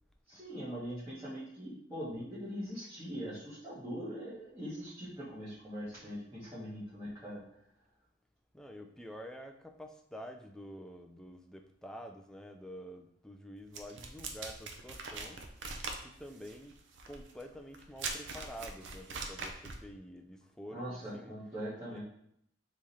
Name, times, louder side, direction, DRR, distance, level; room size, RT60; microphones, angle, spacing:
voice 1, 0.3-7.4 20.7-22.0, equal, 15° right, -11 dB, 1.3 m, -42 dB
voice 2, 8.5-15.4 16.0-16.8 17.1-21.4 21.9-22.0, equal, 5° left, 4 dB, 0.3 m, -48 dB
sound 1, 13.7-19.9, right 4 dB, 70° right, 0.6 m, -42 dB
3.6 x 3.1 x 4.1 m, 0.71 s
head